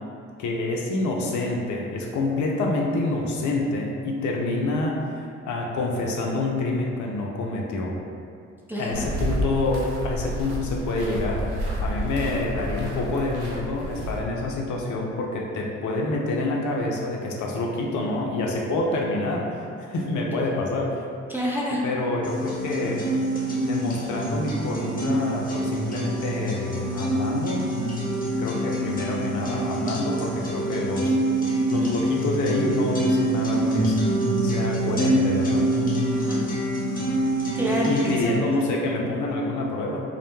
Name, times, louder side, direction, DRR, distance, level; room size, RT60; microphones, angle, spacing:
voice 1, 0.4-5.0 5.4-7.9 8.8-21.0 21.8-23.1 23.6-27.7 28.4-31.2 31.7-34.0 34.4-35.7 37.8-40.0, left 2 dB, 55° left, -1 dB, 0.5 m, -27 dB
voice 2, 8.7-9.1 21.3-21.8 36.1-36.4 37.5-38.3, equal, 5° right, -5 dB, 0.4 m, -28 dB
sound 1, 8.9-14.5, equal, 55° right, 0.6 m, -30 dB
sound 2, 22.2-38.2, right 1 dB, 25° left, 0.8 m, -25 dB
2.1 x 2.1 x 3.0 m, 2.4 s
hypercardioid pair, 45°, 36 cm